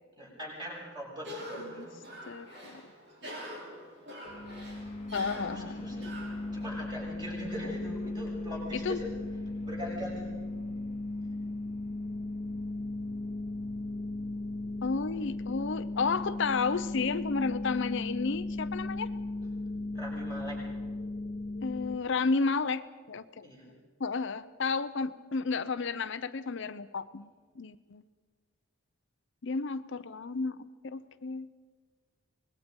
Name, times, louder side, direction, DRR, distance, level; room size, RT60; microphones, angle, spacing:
voice 1, 0.2-1.9 5.4-6.1 6.5-9.1 9.6-10.4 19.9-20.6 23.4-23.7, equal, 20° right, -3 dB, 7.2 m, -41 dB
Cough, 1.2-7.0, equal, 55° right, 5.5 m, -45 dB
voice 2, 2.3-2.8 5.1-5.9 8.7-9.0 14.8-19.1 21.6-23.5 24.0-27.3 27.6-28.0 29.4-31.5, left 4 dB, 60° left, 11 dB, 0.6 m, -32 dB
sound 1, 4.3-22.0, left 2 dB, 30° left, 1.1 m, -37 dB
25.0 x 20.5 x 5.3 m, 1.4 s
head